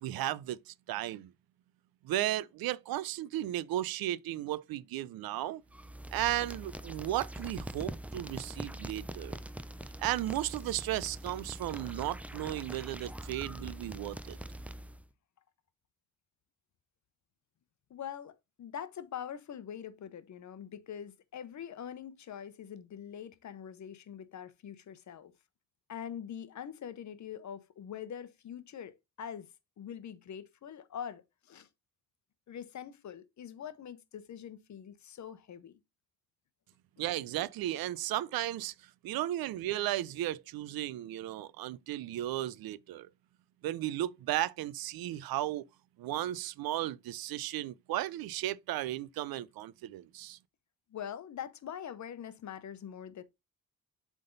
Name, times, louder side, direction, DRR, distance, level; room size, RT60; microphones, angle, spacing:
voice 1, 0.0-1.3 2.0-5.6 6.1-9.4 10.0-14.4 37.0-38.7 39.0-43.1 43.6-45.7 46.0-50.4, right 14 dB, 85° right, 0.5 m, -35 dB
sound 1, 5.7-15.1, right 1 dB, 5° right, 0.4 m, -43 dB
voice 2, 17.9-25.3 25.9-29.5 29.8-31.7 32.5-35.8 50.9-53.2, left 9 dB, 55° left, 0.9 m, -44 dB
7.7 x 3.6 x 3.9 m
cardioid pair, 105°, 35 cm